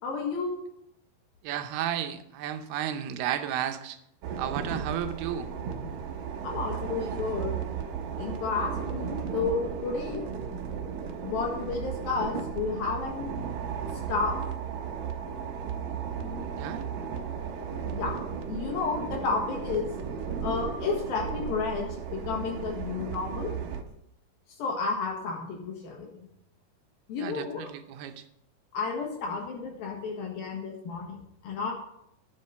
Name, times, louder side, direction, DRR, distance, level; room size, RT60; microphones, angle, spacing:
voice 1, 0.0-0.6 6.4-7.5 8.2-10.2 11.2-13.4 14.1-14.4 16.2-16.6 17.8-18.2 18.5-19.9 20.4-23.5 24.6-26.3 27.1-27.7 28.7-31.2 31.4-31.7, left 4 dB, 70° left, -1 dB, 3.2 m, -31 dB
voice 2, 1.4-4.0 4.4-5.5 16.6-16.8 27.2-28.2, right 10 dB, 90° right, 8 dB, 2.8 m, -33 dB
sound 1, 4.2-23.8, right 7 dB, 70° right, 2.3 m, -35 dB
10.5 x 7.2 x 5.7 m, 0.77 s
omnidirectional pair, 4.5 m